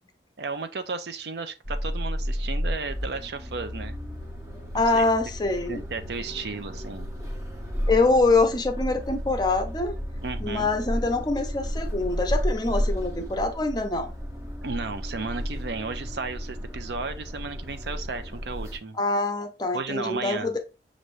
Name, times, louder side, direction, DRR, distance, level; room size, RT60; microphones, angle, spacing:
voice 1, 0.4-4.0 4.7-5.1 5.7-7.1 10.2-10.7 14.6-19.0 19.7-20.5, right 4 dB, 70° right, 0.5 m, -34 dB
sound 1, 1.6-18.8, equal, 15° right, 0.7 m, -32 dB
voice 2, 4.7-5.8 7.9-10.0 10.4-14.1 19.0-20.6, left 3 dB, 25° left, 0.6 m, -24 dB
6.5 x 2.6 x 3.1 m
head